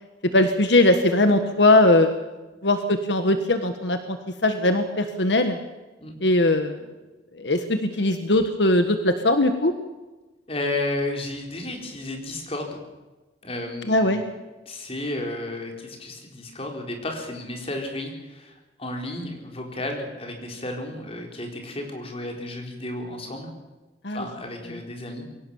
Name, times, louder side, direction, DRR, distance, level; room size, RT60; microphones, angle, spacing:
voice 1, 0.3-2.1 2.6-4.2 4.4-5.6 6.2-6.8 7.3-9.7 13.8-14.2 24.0-24.3 24.7-24.8, left 2 dB, 75° left, 8 dB, 1.5 m, -20 dB
voice 2, 10.5-12.8 13.4-14.3 14.7-18.5 18.8-23.5 24.1-25.3, left 1 dB, 35° left, 2 dB, 4.3 m, -32 dB
23.0 x 17.5 x 7.2 m, 1.1 s
head